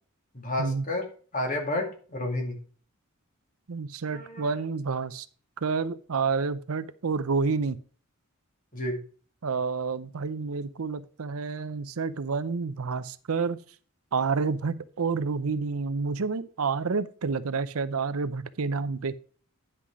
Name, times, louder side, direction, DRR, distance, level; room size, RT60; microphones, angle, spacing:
voice 1, 0.3-1.0 1.3-2.6 4.1-4.5 8.7-9.0, left 1 dB, 35° left, 2 dB, 2.3 m, -31 dB
voice 2, 3.7-5.3 5.6-7.8 9.4-13.6 14.1-19.1, right 4 dB, 80° right, 14 dB, 0.6 m, -29 dB
9.9 x 5.9 x 4.8 m, 0.42 s
head